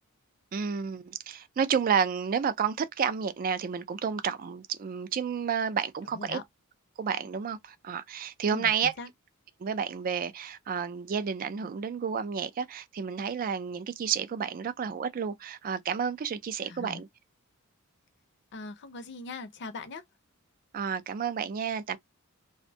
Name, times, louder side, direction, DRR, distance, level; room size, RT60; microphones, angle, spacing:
voice 1, 0.5-6.4 7.0-8.9 9.6-17.1 20.7-22.0, right 7 dB, 40° right, 0.3 m, -30 dB
voice 2, 8.5-9.1 16.6-17.0 18.5-20.0, left 3 dB, 55° left, 0.5 m, -41 dB
2.5 x 2.1 x 2.6 m
head